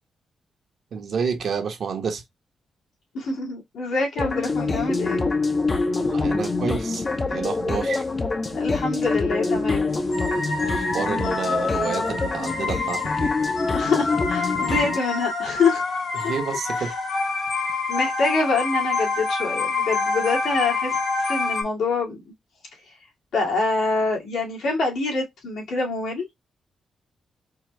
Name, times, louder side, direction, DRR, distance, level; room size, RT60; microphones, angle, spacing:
voice 1, 0.9-2.2 6.0-7.0 7.3-8.0 10.7-13.3 16.2-17.0, right 6 dB, 60° right, 1.0 m, -29 dB
voice 2, 3.1-5.3 8.5-10.0 13.8-15.8 16.2-16.3 16.7-16.9 17.9-22.2 23.3-26.3, left 3 dB, 85° left, 2.1 m, -25 dB
sound 1, 4.2-15.0, left 3 dB, 30° left, 0.6 m, -25 dB
sound 2, 10.1-21.6, left 3 dB, 65° left, 1.2 m, -27 dB
4.7 x 2.2 x 3.1 m
cardioid pair, 120°, 0 cm